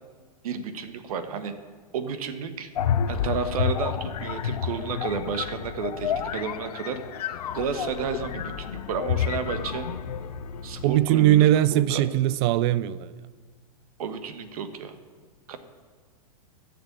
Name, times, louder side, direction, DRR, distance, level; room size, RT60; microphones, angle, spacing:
voice 1, 0.4-1.5 1.9-2.7 3.1-7.0 7.5-9.9 10.6-11.5 11.7-12.0 14.0-14.9 15.5-15.6, right 6 dB, 70° right, 1.4 m, -31 dB
sound 1, 2.8-11.6, left 8 dB, 80° left, 0.8 m, -30 dB
voice 2, 10.8-13.1, right 13 dB, 45° right, 0.5 m, -20 dB
13.5 x 6.8 x 8.6 m
hypercardioid pair, 135°, 19 cm